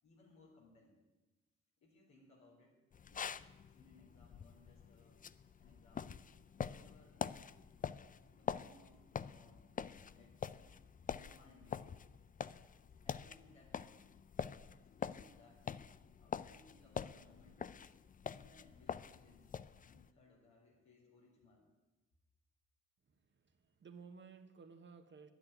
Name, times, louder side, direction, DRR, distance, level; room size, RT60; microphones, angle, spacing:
voice 1, 0.0-1.0 1.8-2.7 3.0-3.3 3.7-5.2 5.6-6.1 6.7-7.2 8.3-10.7 11.1-11.9 13.0-14.1 15.0-15.6 16.2-17.6 18.3-21.7, left 3 dB, 75° left, -4 dB, 4.3 m, -66 dB
sound 1, 2.9-20.1, left 7 dB, 30° left, 0.5 m, -46 dB
voice 2, 23.0-25.3, right 5 dB, 40° right, 8 dB, 1.3 m, -57 dB
10.5 x 9.4 x 9.5 m, 1.1 s
cardioid pair, 85°, 29 cm